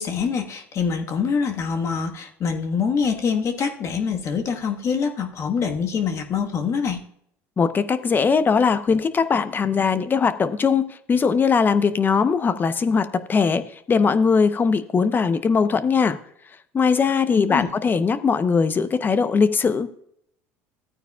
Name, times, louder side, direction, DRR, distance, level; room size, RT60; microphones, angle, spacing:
voice 1, 0.0-7.0 17.4-17.7, left 6 dB, 45° left, 4 dB, 1.4 m, -25 dB
voice 2, 7.6-16.2 16.7-19.9, left 5 dB, 30° left, 12 dB, 0.8 m, -20 dB
13.5 x 9.0 x 2.3 m, 0.69 s
supercardioid pair, 90°, 7 cm